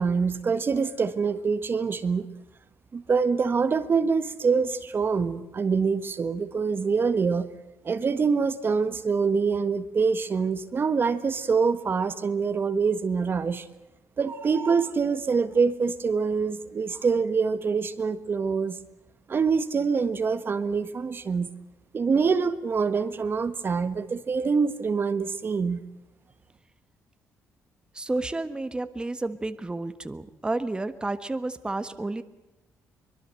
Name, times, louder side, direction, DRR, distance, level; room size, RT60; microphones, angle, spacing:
voice 1, 0.0-2.3 2.9-7.5 7.8-13.7 14.2-18.8 19.3-21.5 21.9-25.8, right 5 dB, 40° right, 11 dB, 1.4 m, -25 dB
voice 2, 27.9-32.2, right 2 dB, 15° right, 11 dB, 1.4 m, -31 dB
24.0 x 22.0 x 7.7 m, 0.98 s
cardioid pair, 100°, 6 cm